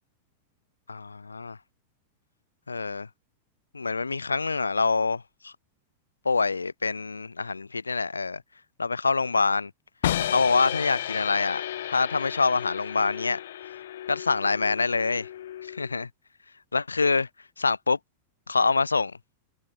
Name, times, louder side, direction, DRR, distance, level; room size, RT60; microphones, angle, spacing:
voice 1, 0.9-1.6 2.7-3.1 3.7-5.5 6.2-8.4 8.8-9.7 10.2-11.6 11.9-13.4 14.1-15.2 15.8-16.1 16.7-17.3 17.6-18.0 18.5-19.2, left 4 dB, 80° left, 4.4 m, -25 dB
sound 1, 10.0-16.0, left 12 dB, 60° left, 1.3 m, -33 dB
figure-of-eight pair, 90°, 0 cm